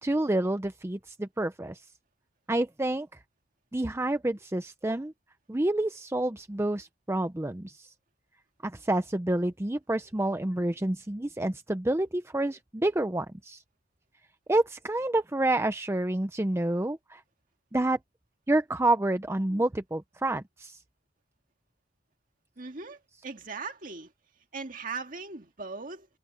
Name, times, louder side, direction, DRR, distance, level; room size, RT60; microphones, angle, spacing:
voice 1, 0.0-1.8 2.5-3.2 3.7-5.1 5.5-7.9 8.6-13.6 14.5-17.2 17.7-18.0 18.5-20.8, right 1 dB, 15° right, 0.5 m, -28 dB
voice 2, 22.6-24.1 24.5-26.1, right 4 dB, 45° right, 2.1 m, -39 dB
head